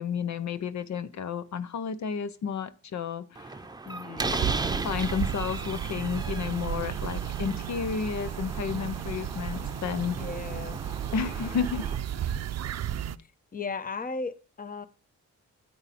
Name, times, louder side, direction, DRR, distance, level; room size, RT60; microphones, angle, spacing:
voice 1, 0.0-3.6 4.4-4.5 4.8-10.2 11.1-11.9, left 6 dB, 70° left, 0.8 m, -32 dB
Slam, 3.4-12.0, right 3 dB, 15° right, 0.7 m, -37 dB
voice 2, 3.9-4.5 10.2-10.8 13.5-14.9, left 4 dB, 30° left, 0.9 m, -36 dB
sound 1, 4.2-13.2, right 10 dB, 60° right, 0.5 m, -33 dB
9.4 x 8.6 x 4.2 m
wide cardioid pair, 125°, 29 cm